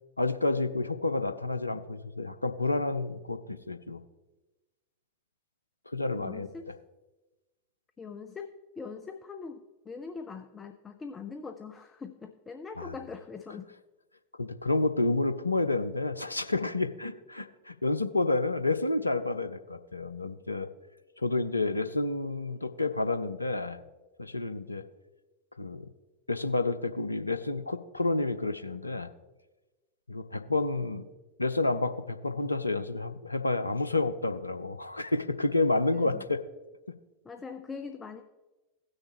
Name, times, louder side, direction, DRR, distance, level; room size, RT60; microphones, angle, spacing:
voice 1, 0.2-4.0 5.9-6.5 12.8-12.9 14.4-20.7 21.2-23.8 24.2-24.8 25.6-25.9 26.3-29.1 30.1-31.1 31.4-36.4, left 2 dB, 85° left, 9 dB, 0.6 m, -29 dB
voice 2, 6.1-6.7 8.0-13.7 16.5-16.6 35.9-36.3 37.2-38.2, left 5 dB, 15° left, 7 dB, 0.6 m, -42 dB
16.5 x 6.4 x 3.0 m, 1.1 s
figure-of-eight pair, 90°, 0 cm